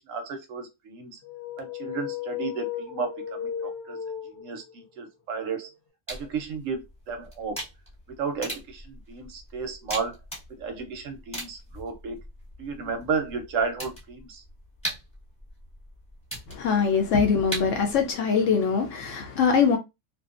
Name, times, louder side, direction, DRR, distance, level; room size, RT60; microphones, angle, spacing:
voice 1, 0.1-1.2 1.6-4.0 4.2-5.7 6.1-7.6 8.1-10.2 10.5-12.2 12.6-14.4, right 5 dB, 70° right, 0.9 m, -33 dB
sound 1, 1.2-4.9, left 9 dB, 90° left, 1.4 m, -35 dB
sound 2, 6.1-18.1, right 1 dB, 5° left, 1.1 m, -40 dB
voice 2, 16.5-19.8, left 6 dB, 70° left, 0.8 m, -23 dB
2.5 x 2.2 x 2.4 m
omnidirectional pair, 1.6 m